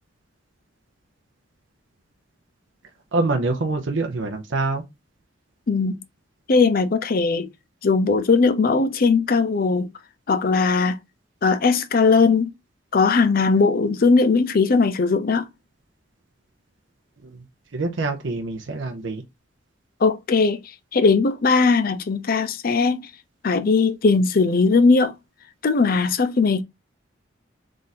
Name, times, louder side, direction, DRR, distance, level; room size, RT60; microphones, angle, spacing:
voice 1, 3.1-4.8 17.2-17.4 17.7-19.2, right 3 dB, 70° right, 0.7 m, -25 dB
voice 2, 5.7-6.0 6.5-7.5 7.8-9.9 10.3-11.0 11.4-12.5 12.9-15.5 20.0-23.1 23.4-25.2 25.6-26.6, left 4 dB, 50° left, 0.5 m, -19 dB
3.7 x 2.5 x 4.0 m
head